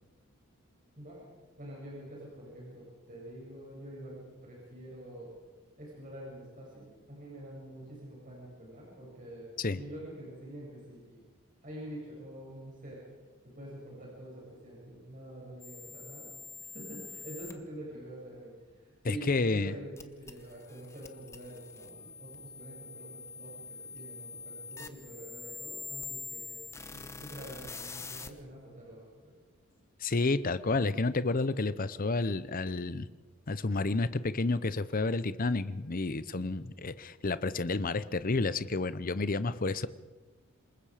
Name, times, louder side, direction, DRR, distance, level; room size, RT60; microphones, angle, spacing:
voice 1, 1.6-5.3 5.8-9.5 9.8-11.2 11.6-13.0 13.4-16.3 16.7-26.6 26.9-29.3, right 1 dB, 40° right, -4 dB, 7.3 m, -46 dB
sound 1, 15.6-17.5 20.0-28.3, left 4 dB, 15° left, 1.0 m, -45 dB
voice 2, 19.0-19.7 30.0-33.1 33.5-39.9, left 3 dB, 40° left, 15 dB, 0.7 m, -30 dB
27.5 x 20.5 x 5.0 m, 1.3 s
head